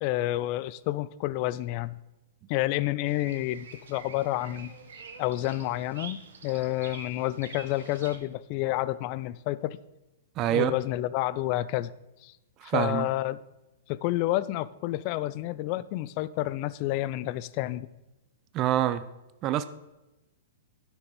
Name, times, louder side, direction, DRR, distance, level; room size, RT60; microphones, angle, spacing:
voice 1, 0.0-2.0 2.5-4.7 5.2-9.8 10.5-11.9 12.2-12.3 12.6-13.4 13.9-17.9, left 16 dB, 45° left, 0.4 m, -29 dB
Bird vocalization bird call bird song, 3.1-8.2, right 5 dB, 75° right, 1.4 m, -47 dB
voice 2, 10.4-10.7 12.6-13.1 18.5-19.0 19.4-19.6, right 12 dB, 35° right, 0.5 m, -26 dB
9.8 x 6.3 x 5.2 m
hypercardioid pair, 120°, 0 cm